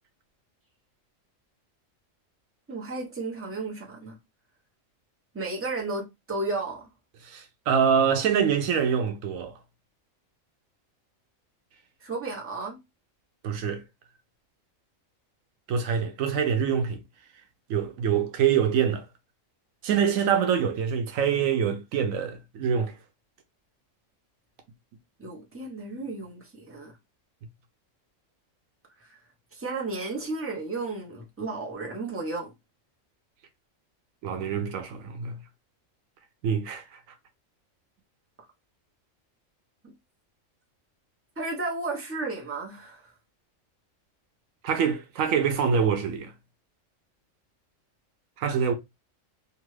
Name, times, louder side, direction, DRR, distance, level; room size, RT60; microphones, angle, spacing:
voice 1, 2.7-4.2 5.3-6.9 12.0-12.8 25.2-26.9 29.0-29.2 29.5-32.5 39.8-39.9 41.4-43.1, right 3 dB, 15° right, 0.6 m, -33 dB
voice 2, 7.2-9.6 13.4-13.8 15.7-17.0 17.7-19.0 19.8-22.9 34.2-35.4 36.4-37.0 44.6-46.3 48.4-48.7, right 7 dB, 85° right, 1.0 m, -25 dB
2.9 x 2.3 x 3.0 m
omnidirectional pair, 1.4 m